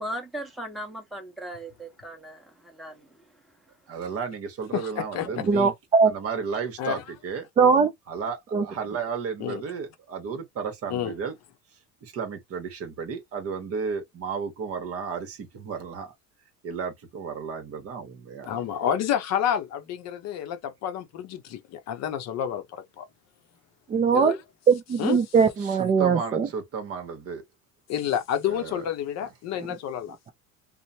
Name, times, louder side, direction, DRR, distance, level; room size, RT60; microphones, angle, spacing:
voice 1, 0.0-3.4, right 1 dB, ahead, 1.0 m, -38 dB
voice 2, 3.9-5.7 6.0-7.5 8.1-11.4 12.0-16.1 16.6-18.8 25.6-27.4 28.4-28.9 29.2-29.3, right 6 dB, 40° right, 1.0 m, -33 dB
voice 3, 4.7-5.3 6.8-7.0 9.4-9.6 10.9-11.1 18.4-20.6 20.8-21.6 21.9-22.6 23.0-23.1 24.1-24.4 25.0-25.2 27.9-30.1, left 9 dB, 50° left, 0.6 m, -29 dB
voice 4, 5.5-6.1 7.6-7.9 8.5-8.6 23.9-24.4 24.7-26.5, right 5 dB, 20° right, 0.4 m, -20 dB
3.0 x 2.1 x 2.7 m
cardioid pair, 125°, 34 cm